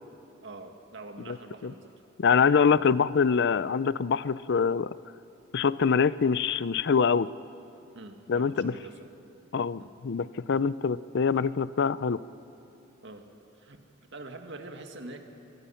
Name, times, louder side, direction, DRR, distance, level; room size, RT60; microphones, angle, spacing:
voice 1, 0.4-1.9 2.6-3.0 7.9-9.1 9.8-9.9 13.0-13.3 13.6-13.8 14.1-15.2, right 2 dB, 60° right, 4 dB, 1.9 m, -44 dB
voice 2, 2.2-5.0 5.5-7.3 8.3-8.7 9.5-12.2, left 6 dB, 60° left, 17 dB, 0.5 m, -24 dB
26.0 x 21.5 x 5.8 m, 2.9 s
head